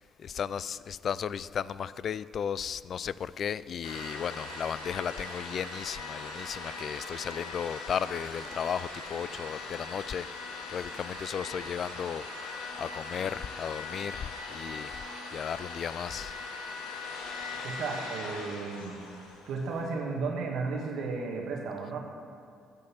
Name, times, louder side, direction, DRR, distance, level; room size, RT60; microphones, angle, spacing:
voice 1, 0.2-10.3 10.7-12.2 12.8-14.9 15.3-16.3, left 8 dB, 55° left, 18 dB, 0.3 m, -35 dB
sound 1, 3.8-19.9, left 3 dB, 80° left, 1.6 m, -40 dB
voice 2, 17.5-19.0 19.5-22.0, right 4 dB, 65° right, 1 dB, 2.1 m, -34 dB
14.5 x 5.4 x 8.6 m, 2.4 s
hypercardioid pair, 50°, 0 cm